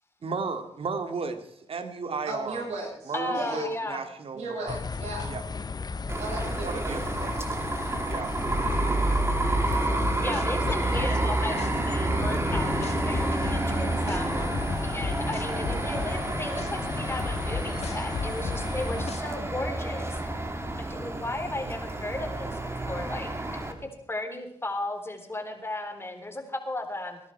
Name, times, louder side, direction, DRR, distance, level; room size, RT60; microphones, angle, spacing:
voice 1, 0.2-2.6 3.1-4.8 5.3-5.4 6.6-7.5 8.1-8.4, right 4 dB, 55° right, 8 dB, 2.2 m, -34 dB
voice 2, 2.2-3.7 4.3-5.3 6.2-7.0, right 2 dB, 80° right, -4 dB, 7.8 m, -36 dB
voice 3, 3.1-4.0 10.2-14.3 14.8-20.2 20.8-27.2, left 2 dB, 20° left, 4 dB, 3.9 m, -35 dB
sound 1, 4.7-19.1, left 4 dB, 35° left, 0.9 m, -36 dB
sound 2, 6.1-23.7, right 2 dB, 20° right, 2.8 m, -29 dB
sound 3, 9.7-11.1 11.6-11.7 12.2-13.6 14.1-14.2 14.5-16.1 16.6-16.7 17.2-18.6 19.1-19.2, left 6 dB, 70° left, 1.8 m, -34 dB
21.5 x 11.0 x 4.7 m, 0.72 s
supercardioid pair, 55°, 11 cm